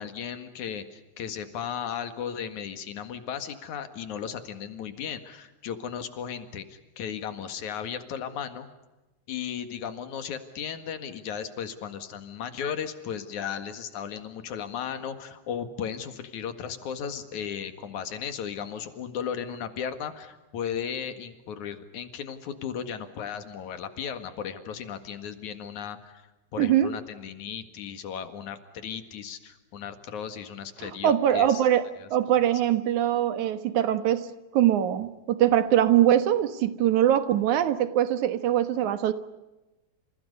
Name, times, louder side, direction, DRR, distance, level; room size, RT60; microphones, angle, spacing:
voice 1, 0.0-8.7 9.3-26.2 26.5-31.6 32.0-32.1, left 8 dB, 80° left, 3.3 m, -35 dB
voice 2, 26.6-26.9 30.8-34.3 34.5-39.1, right 11 dB, 85° right, 2.8 m, -23 dB
29.0 x 28.5 x 5.4 m
omnidirectional pair, 3.3 m